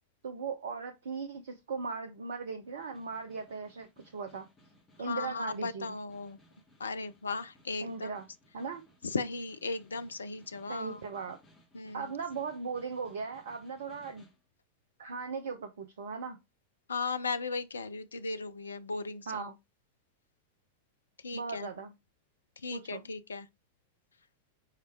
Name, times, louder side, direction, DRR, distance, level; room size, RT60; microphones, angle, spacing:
voice 1, 0.2-4.5 5.0-5.8 7.8-8.2 8.5-8.8 10.7-11.4 11.9-14.3 15.0-16.4 19.3-19.5 21.3-21.9 22.7-23.0, right 5 dB, 60° right, 0.8 m, -38 dB
Snare drum, 2.6-14.4, equal, 20° left, 3.0 m, -63 dB
voice 2, 5.0-6.4 6.8-8.1 9.0-11.0 11.7-12.1 16.9-19.4 21.2-21.7 22.6-23.5, left 4 dB, 75° left, 0.6 m, -36 dB
4.8 x 4.7 x 4.4 m
figure-of-eight pair, 90°, 0 cm